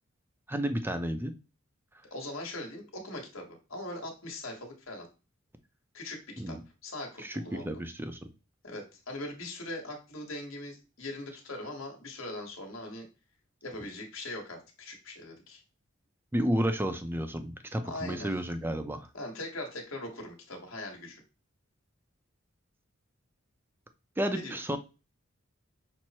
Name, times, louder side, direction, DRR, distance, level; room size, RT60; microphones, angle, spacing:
voice 1, 0.5-1.3 6.4-6.6 7.2-8.2 16.3-19.1 24.2-24.8, equal, 10° right, 8 dB, 0.5 m, -31 dB
voice 2, 2.1-5.1 5.9-6.2 6.5-6.6 6.8-7.8 8.6-13.1 13.6-15.6 17.8-18.3 19.1-21.2 24.3-24.6, left 1 dB, 70° left, 1 dB, 1.4 m, -40 dB
6.2 x 2.1 x 4.2 m, 0.31 s
head